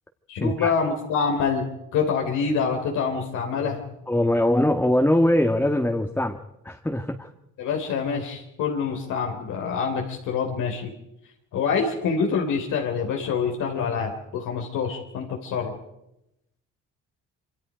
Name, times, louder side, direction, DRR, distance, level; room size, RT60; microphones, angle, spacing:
voice 1, 0.3-3.8 7.6-10.9 11.5-15.7, left 5 dB, 90° left, 1 dB, 3.7 m, -26 dB
voice 2, 4.1-6.4 6.6-7.3, left 1 dB, 5° left, 3 dB, 1.7 m, -22 dB
26.5 x 25.5 x 5.1 m, 0.87 s
cardioid pair, 90°, 30 cm